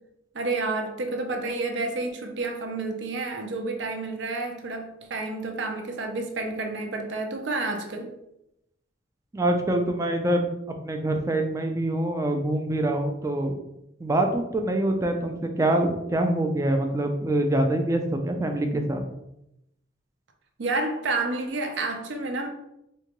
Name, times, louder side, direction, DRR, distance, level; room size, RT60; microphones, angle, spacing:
voice 1, 0.3-8.1 20.6-22.5, right 3 dB, 70° right, 0.5 m, -30 dB
voice 2, 9.3-10.5 10.8-13.6 14.0-19.0, right 1 dB, 15° right, 0.3 m, -25 dB
3.7 x 2.2 x 2.9 m
head